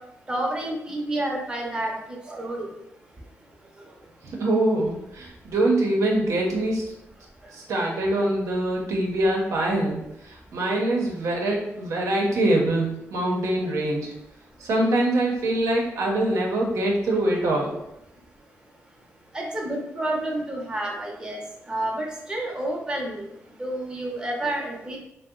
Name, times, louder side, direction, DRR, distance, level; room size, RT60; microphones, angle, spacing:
voice 1, 0.3-1.9 2.3-2.7 19.3-21.4 21.7-23.2 23.6-25.0, right 1 dB, 15° right, -1 dB, 0.7 m, -29 dB
voice 2, 4.2-6.8 7.5-14.1 14.6-17.8, right 1 dB, 80° right, -1 dB, 0.6 m, -24 dB
2.6 x 2.0 x 3.6 m, 0.84 s
cardioid pair, 85°, 5 cm